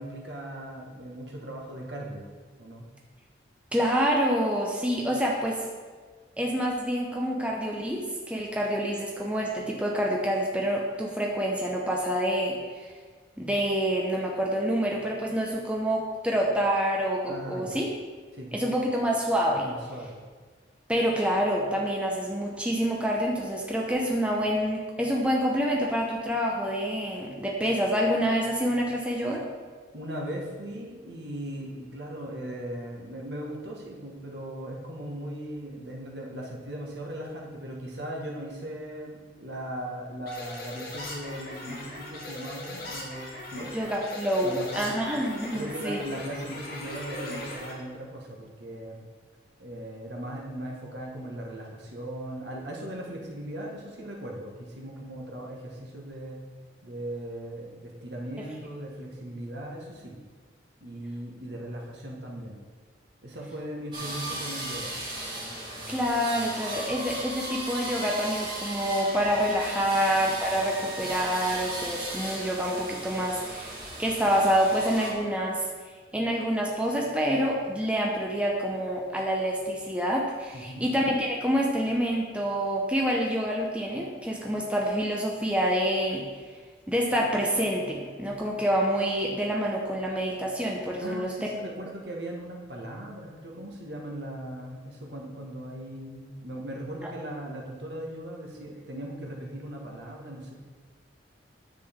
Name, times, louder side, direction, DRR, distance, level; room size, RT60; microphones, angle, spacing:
voice 1, 0.0-2.3 2.6-2.9 17.3-17.8 18.3-18.5 19.6-20.2 29.9-43.8 44.4-44.9 45.5-49.0 49.6-56.4 56.8-60.2 60.8-62.6 63.2-64.9 69.9-70.1 80.5-80.9 91.0-100.6, right 1 dB, 70° right, -1 dB, 1.6 m, -38 dB
voice 2, 3.7-5.6 6.4-12.9 13.4-17.9 18.5-19.7 20.9-29.4 43.7-46.0 65.9-75.6 76.1-86.3 86.9-91.3, equal, 5° right, -2 dB, 0.9 m, -27 dB
sound 1, 40.3-47.7, left 1 dB, 50° left, 2.3 m, -39 dB
sound 2, 63.9-75.1, right 1 dB, 25° right, 2.0 m, -36 dB
9.9 x 7.6 x 3.6 m, 1.5 s
head